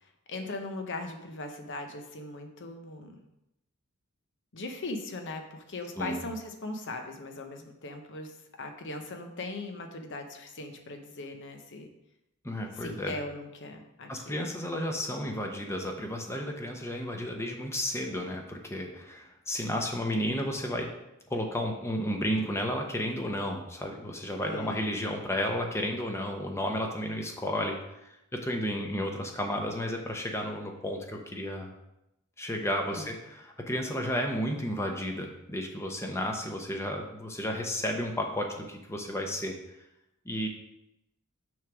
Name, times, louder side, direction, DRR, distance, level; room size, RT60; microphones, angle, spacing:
voice 1, 0.0-3.2 4.5-11.9 12.7-14.4 24.4-24.8 32.9-33.1, left 2 dB, 55° left, 5 dB, 0.9 m, -39 dB
voice 2, 12.4-13.2 14.1-20.9 21.3-27.8 28.3-31.7 32.4-39.6 40.2-40.5, equal, 10° left, 2 dB, 0.8 m, -32 dB
6.3 x 3.6 x 6.1 m, 0.87 s
head